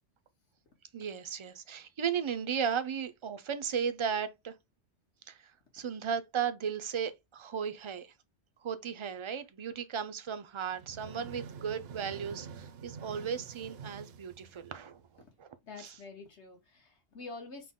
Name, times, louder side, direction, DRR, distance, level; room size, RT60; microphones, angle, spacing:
voice 1, 0.9-4.5 5.3-8.1 8.6-15.0 15.4-15.5 15.8-15.9, right 7 dB, 45° right, 0.4 m, -35 dB
sound 1, 10.7-15.2, right 6 dB, 65° right, 0.8 m, -47 dB
voice 2, 15.6-17.7, left 3 dB, 75° left, 1.6 m, -47 dB
5.8 x 2.2 x 3.6 m
omnidirectional pair, 1.2 m